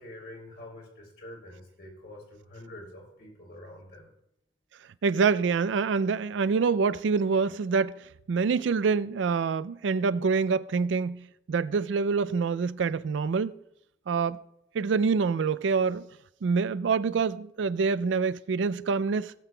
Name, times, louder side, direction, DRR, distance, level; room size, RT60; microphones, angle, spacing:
voice 1, 0.0-4.1, left 1 dB, 65° left, 3.5 m, -46 dB
voice 2, 5.0-13.5 14.1-14.4 14.7-16.1 16.4-19.3, right 5 dB, 85° right, 0.4 m, -26 dB
18.0 x 7.5 x 2.3 m
head